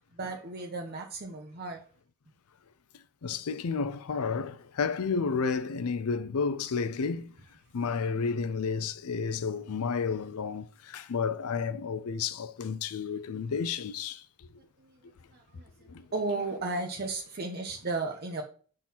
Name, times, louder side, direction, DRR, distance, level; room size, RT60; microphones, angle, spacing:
voice 1, 0.1-1.8 14.8-18.4, right 3 dB, 45° right, 0.7 m, -35 dB
voice 2, 3.2-7.3 7.7-14.5 15.9-16.1, left 5 dB, 85° left, 0.5 m, -31 dB
6.0 x 3.8 x 4.1 m
head